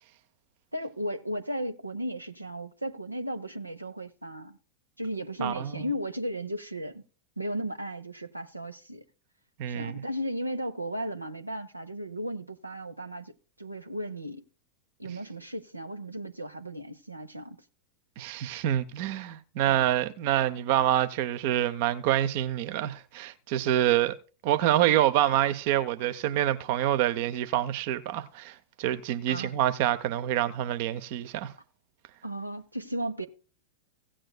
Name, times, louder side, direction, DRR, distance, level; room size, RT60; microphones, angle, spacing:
voice 1, 0.7-4.6 5.0-7.0 7.4-9.0 9.7-13.3 13.6-14.4 15.0-17.6 19.6-19.8 29.3-29.5 32.2-33.3, equal, 85° right, 0.7 m, -35 dB
voice 2, 5.4-5.8 9.6-10.0 18.2-24.1 24.4-31.5, right 12 dB, 50° right, 0.7 m, -27 dB
16.5 x 8.7 x 2.3 m
figure-of-eight pair, 90°, 0 cm